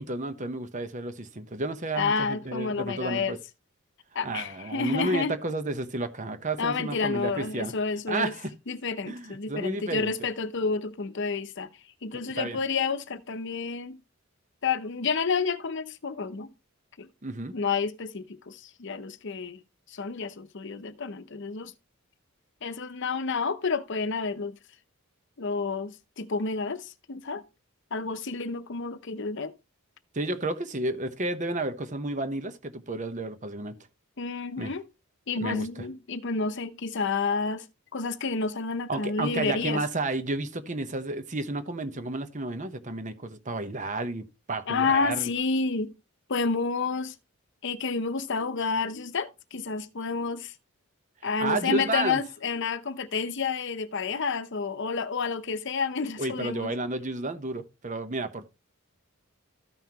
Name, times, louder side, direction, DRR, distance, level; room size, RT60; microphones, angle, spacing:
voice 1, 0.0-3.4 4.2-7.7 8.1-8.5 9.1-10.2 12.1-12.6 17.2-17.6 30.1-33.8 34.6-34.8 35.4-35.9 38.9-45.3 51.4-52.2 56.2-58.5, right 2 dB, 35° right, 0.9 m, -32 dB
voice 2, 1.9-3.3 4.1-5.4 6.6-8.3 8.7-11.7 12.0-14.0 14.6-16.5 17.0-17.1 17.5-19.6 19.9-21.7 22.6-24.6 25.4-27.4 27.9-29.5 34.2-34.8 35.3-37.6 37.9-39.8 44.7-45.9 46.3-47.1 47.6-50.5 51.2-56.7, left 4 dB, 55° left, 0.8 m, -30 dB
14.0 x 5.6 x 2.9 m
head